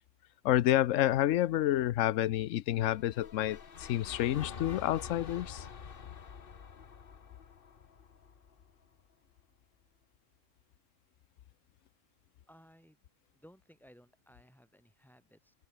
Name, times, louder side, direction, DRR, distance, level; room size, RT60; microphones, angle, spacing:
voice 1, 0.4-5.6, left 13 dB, 80° left, 1.0 m, -29 dB
sound 1, 2.9-9.0, left 6 dB, 45° left, 1.2 m, -47 dB
voice 2, 12.5-13.0 13.3-15.5, equal, ahead, 5.4 m, -60 dB
open air
omnidirectional pair, 1.3 m